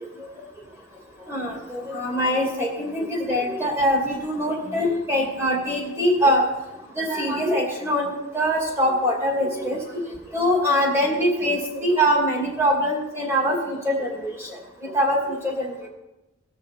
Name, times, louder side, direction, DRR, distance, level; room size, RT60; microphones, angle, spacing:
voice 1, 1.3-6.5 7.0-9.8 10.3-15.6, equal, 15° right, -2 dB, 2.5 m, -23 dB
17.5 x 6.0 x 4.2 m, 0.98 s
head